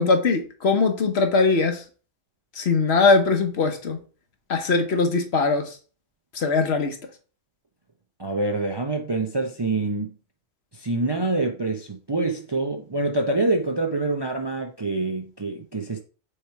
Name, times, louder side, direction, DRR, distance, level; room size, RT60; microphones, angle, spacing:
voice 1, 0.0-1.8 2.6-4.0 4.5-5.8 6.3-7.0, left 4 dB, 60° left, 1.2 m, -21 dB
voice 2, 8.2-10.1 10.7-16.0, right 2 dB, 30° right, 0.5 m, -26 dB
6.5 x 3.2 x 4.5 m
omnidirectional pair, 1.3 m